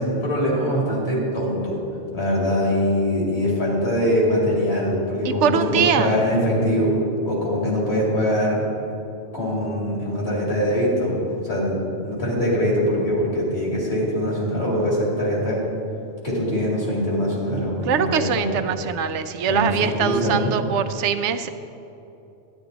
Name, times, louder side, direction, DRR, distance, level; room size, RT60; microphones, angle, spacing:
voice 1, 0.0-1.8 2.1-6.9 7.2-8.7 9.3-11.8 12.0-15.6 16.2-18.5 19.5-20.5, equal, 60° left, -4 dB, 2.9 m, -22 dB
voice 2, 5.2-6.1 17.9-21.5, right 7 dB, 85° right, 10 dB, 0.9 m, -22 dB
11.5 x 10.0 x 3.9 m, 2.8 s
omnidirectional pair, 1.2 m